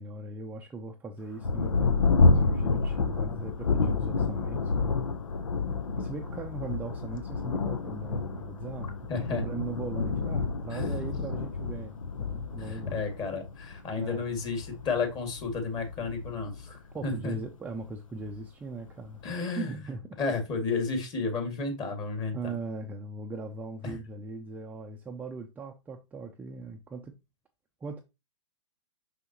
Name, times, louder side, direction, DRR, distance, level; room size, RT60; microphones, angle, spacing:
voice 1, 0.0-5.0 6.0-13.0 14.0-14.3 16.9-19.2 19.6-20.2 22.3-27.1 27.8-28.0, right 3 dB, 10° right, 0.5 m, -39 dB
Thunder, 1.4-17.5 18.2-18.3 18.9-19.3, left 4 dB, 85° left, 1.0 m, -29 dB
voice 2, 9.1-9.4 10.7-11.1 12.6-17.3 19.2-19.8 20.2-22.5 23.8-24.0, left 4 dB, 25° left, 2.1 m, -32 dB
6.1 x 5.7 x 2.9 m
hypercardioid pair, 130°, 16 cm